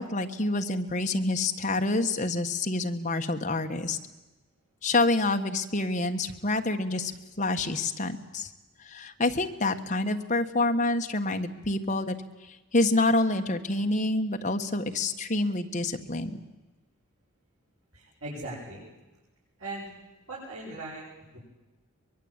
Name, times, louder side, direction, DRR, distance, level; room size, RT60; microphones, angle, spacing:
voice 1, 0.0-4.0 4.8-7.1 7.4-8.5 8.9-12.2 12.7-16.4, left 2 dB, 35° left, 5 dB, 1.4 m, -27 dB
voice 2, 17.9-18.8 19.6-19.9 20.3-21.0 21.3-21.4, right 2 dB, 80° right, -6 dB, 7.6 m, -38 dB
23.5 x 22.0 x 9.0 m, 1.1 s
head